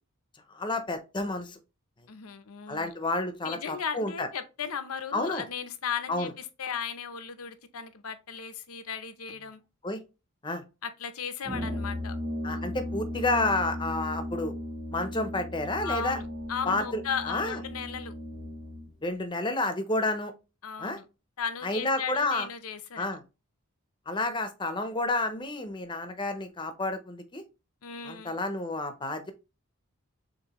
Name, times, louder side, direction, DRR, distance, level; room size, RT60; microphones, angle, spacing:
voice 1, 0.5-1.6 2.7-4.3 5.1-5.4 6.1-6.3 9.8-10.0 10.4-10.6 12.4-14.5 14.9-16.2 16.7-17.0 17.3-17.6 19.0-20.3 20.8-21.0 21.6-22.5 23.0-23.2 24.1-27.4 28.0-29.3, left 2 dB, 20° left, 0.6 m, -30 dB
voice 2, 2.1-2.9 3.4-9.6 10.8-12.2 12.5-12.6 15.8-18.1 20.6-21.0 21.4-23.1 27.8-28.4, left 7 dB, 85° left, 0.7 m, -36 dB
Brass instrument, 11.4-18.9, left 1 dB, 75° right, 2.3 m, -36 dB
6.6 x 2.7 x 2.9 m
head